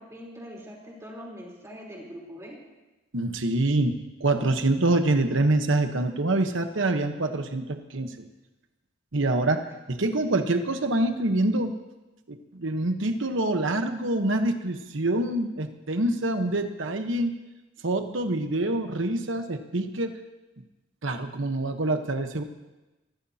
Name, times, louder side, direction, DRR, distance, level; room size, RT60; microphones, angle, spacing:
voice 1, 0.0-2.6, equal, 15° right, -3 dB, 3.7 m, -42 dB
voice 2, 3.1-8.2 9.1-11.7 12.3-17.3 17.8-20.1 21.0-22.4, right 2 dB, 70° right, 6 dB, 1.1 m, -26 dB
23.5 x 15.5 x 2.9 m, 1.1 s
head